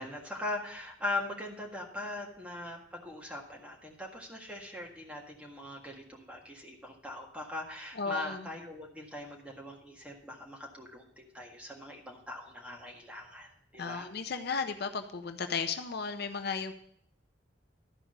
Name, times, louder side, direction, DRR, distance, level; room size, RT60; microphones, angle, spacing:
voice 1, 0.0-14.1, left 2 dB, 5° right, -1 dB, 1.7 m, -41 dB
voice 2, 7.9-8.5 13.8-16.7, left 5 dB, 60° left, 7 dB, 0.6 m, -34 dB
12.5 x 5.0 x 6.5 m, 0.68 s
head